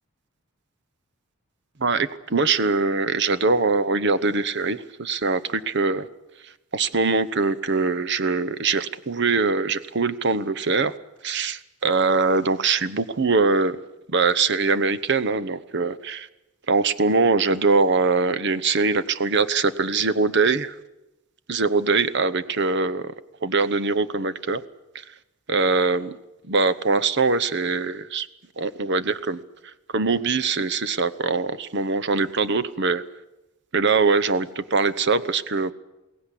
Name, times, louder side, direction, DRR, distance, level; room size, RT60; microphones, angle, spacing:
voice 1, 1.8-6.1 6.4-10.9 11.2-13.8 14.1-16.3 16.7-20.7 21.5-23.1 23.4-24.6 24.9-25.0 25.5-26.2 26.5-28.3 28.6-29.4 29.9-33.0 33.7-35.7, right 4 dB, 55° right, 15 dB, 0.9 m, -22 dB
22.5 x 17.5 x 10.0 m, 0.99 s
head